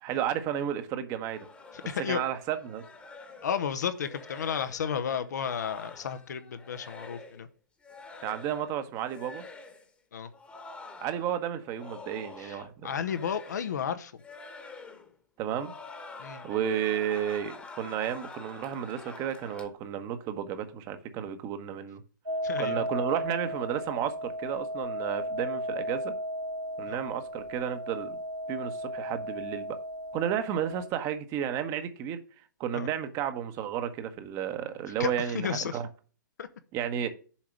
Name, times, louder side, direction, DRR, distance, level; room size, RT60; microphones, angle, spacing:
voice 1, 0.0-1.5 2.1-2.8 8.2-9.4 11.0-12.9 15.4-15.7 16.4-22.0 22.6-26.2 26.8-28.2 28.5-29.8 30.1-32.2 32.6-35.9 36.7-37.1, right 9 dB, 30° right, 1.1 m, -32 dB
sound 1, 1.3-7.4 7.8-8.8 9.1-9.9 10.3-12.7 12.9-13.9 14.2-15.1 15.4-19.7, left 3 dB, 10° left, 1.3 m, -47 dB
voice 2, 1.7-2.2 3.4-7.5 10.1-10.3 12.4-14.1 16.2-16.4 22.4-22.8 26.9-27.0 32.7-32.9 35.0-35.8 36.4-36.5, left 7 dB, 60° left, 0.9 m, -33 dB
sound 2, 22.3-30.9, equal, 85° right, 2.9 m, -35 dB
7.3 x 4.8 x 6.6 m
figure-of-eight pair, 115°, 10 cm